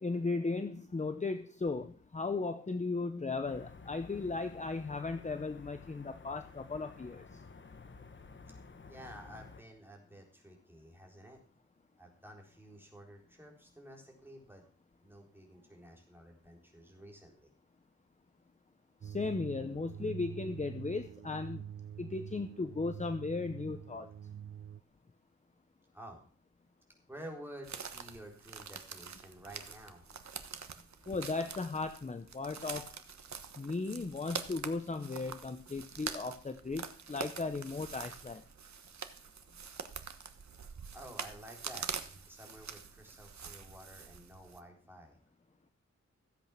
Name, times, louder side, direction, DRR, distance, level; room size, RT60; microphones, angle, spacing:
voice 1, 0.0-7.2 19.0-21.6 22.0-24.1 31.1-32.9 33.6-38.4, left 3 dB, 25° left, 8 dB, 0.8 m, -36 dB
sound 1, 3.5-9.6, left 4 dB, 40° left, 1.2 m, -53 dB
voice 2, 8.5-11.4 12.0-14.7 15.0-17.5 25.9-26.2 27.1-30.1 39.6-39.9 40.8-45.2, right 1 dB, 5° right, 1 dB, 4.0 m, -52 dB
sound 2, 19.0-24.8, right 9 dB, 50° right, 0.6 m, -46 dB
sound 3, 27.6-44.6, right 6 dB, 70° right, 1.3 m, -45 dB
15.5 x 8.3 x 6.0 m, 0.42 s
wide cardioid pair, 140°, 29 cm